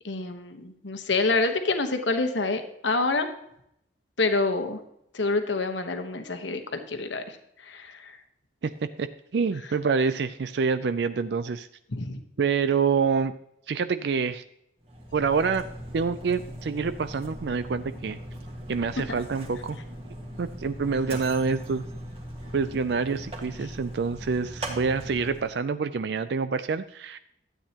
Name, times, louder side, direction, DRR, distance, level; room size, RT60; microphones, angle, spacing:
voice 1, 0.0-3.3 4.2-4.8 5.1-7.4 7.6-8.2 11.9-12.2, left 3 dB, 75° left, 6 dB, 1.2 m, -27 dB
voice 2, 8.6-9.1 9.3-11.7 12.4-13.3 13.7-14.4 15.1-15.7 15.9-18.2 18.7-19.8 20.4-21.8 22.5-27.2, right 5 dB, 60° right, 12 dB, 0.4 m, -27 dB
Mechanisms, 14.8-25.6, right 1 dB, 30° right, 1.6 m, -39 dB
13.0 x 8.7 x 2.9 m, 0.75 s
head